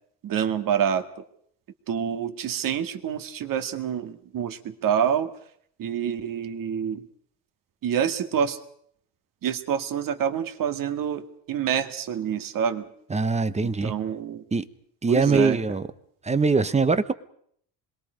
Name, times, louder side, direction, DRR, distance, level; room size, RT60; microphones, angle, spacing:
voice 1, 0.2-1.1 1.9-5.3 5.8-7.1 7.8-8.6 9.4-12.9 13.6-14.4 15.1-15.6, right 8 dB, 50° right, 2.0 m, -27 dB
voice 2, 13.1-13.9 14.5-14.6 15.0-15.8 16.2-17.1, right 4 dB, 15° right, 1.0 m, -22 dB
26.5 x 21.5 x 5.1 m
cardioid pair, 125°, 42 cm